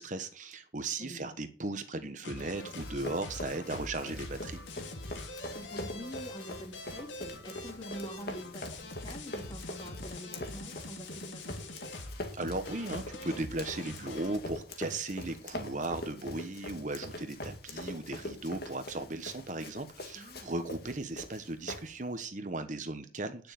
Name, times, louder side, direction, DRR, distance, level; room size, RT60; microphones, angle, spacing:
voice 1, 0.0-4.6 12.3-23.5, right 2 dB, 40° right, 8 dB, 1.2 m, -37 dB
voice 2, 1.0-1.3 5.3-11.9 20.1-20.6, equal, 25° left, 1 dB, 3.3 m, -46 dB
sound 1, 2.2-14.4, left 2 dB, 80° left, 2.6 m, -44 dB
Run, 2.4-22.2, left 1 dB, 55° left, 2.2 m, -44 dB
9.9 x 6.9 x 9.1 m, 0.41 s
head